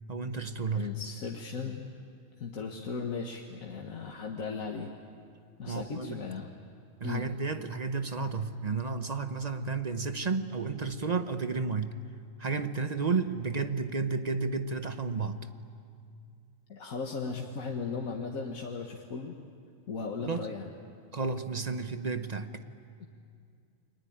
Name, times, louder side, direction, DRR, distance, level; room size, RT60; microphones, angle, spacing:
voice 1, 0.1-0.9 5.7-6.1 7.0-12.0 12.4-15.4 20.2-20.4 21.1-22.5, right 4 dB, 35° right, 9 dB, 0.9 m, -32 dB
voice 2, 0.7-1.8 2.4-4.9 5.6-6.5 7.0-7.3 16.7-19.4 19.9-20.7 23.0-23.1, left 4 dB, 85° left, 1 dB, 1.9 m, -37 dB
30.0 x 22.0 x 8.7 m, 2.3 s
omnidirectional pair, 1.4 m